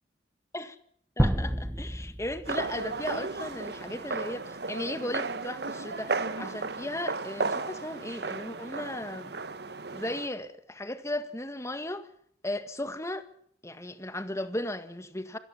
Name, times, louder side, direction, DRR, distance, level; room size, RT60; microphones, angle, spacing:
voice 1, 1.2-9.3 9.9-12.1 12.4-13.3 13.6-15.4, left 1 dB, 15° left, 1.8 m, -36 dB
sound 1, 1.2-3.2, equal, 10° right, 1.2 m, -29 dB
sound 2, 2.5-10.3, right 3 dB, 65° right, 1.5 m, -34 dB
25.5 x 18.0 x 7.3 m
head